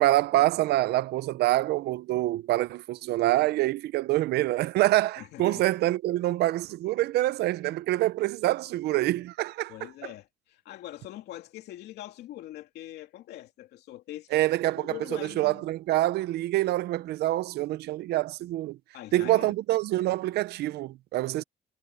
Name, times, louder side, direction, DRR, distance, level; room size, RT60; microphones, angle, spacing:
voice 1, 0.0-9.7 14.3-14.9 15.4-18.8 19.1-21.4, right 16 dB, 75° right, 0.7 m, -26 dB
voice 2, 5.2-5.6 9.7-14.4 14.7-15.7 18.9-19.5, left 14 dB, 75° left, 2.8 m, -43 dB
cardioid pair, 110°, 17 cm